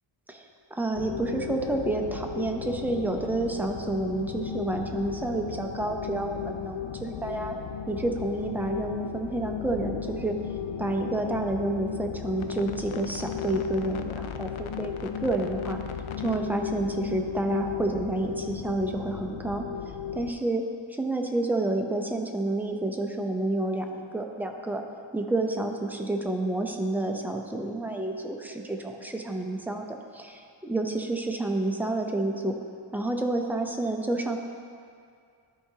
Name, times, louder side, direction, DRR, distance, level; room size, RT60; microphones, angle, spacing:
voice 1, 0.7-7.6 7.9-10.4 10.8-15.8 16.2-19.7 20.1-24.8 25.1-32.6 32.9-34.4, right 2 dB, 5° right, 2 dB, 0.6 m, -29 dB
sound 1, 0.9-20.3, left 8 dB, 75° left, 0.5 m, -35 dB
13.0 x 4.8 x 2.8 m, 2.3 s
wide cardioid pair, 85°, 49 cm